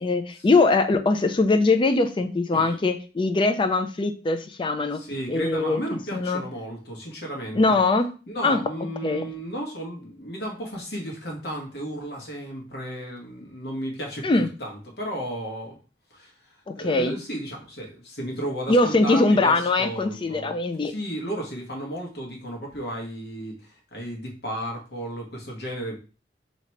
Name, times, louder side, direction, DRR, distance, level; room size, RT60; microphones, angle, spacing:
voice 1, 0.0-5.0 5.3-5.8 6.1-6.4 7.5-8.1 8.4-8.6 9.0-9.3 14.2-14.5 16.7-17.1 18.7-20.9, left 3 dB, 30° left, 8 dB, 0.4 m, -21 dB
voice 2, 4.9-7.8 8.3-15.8 16.1-20.5 20.8-26.0, right 1 dB, 60° left, 0 dB, 1.2 m, -34 dB
2.9 x 2.8 x 4.4 m, 0.35 s
head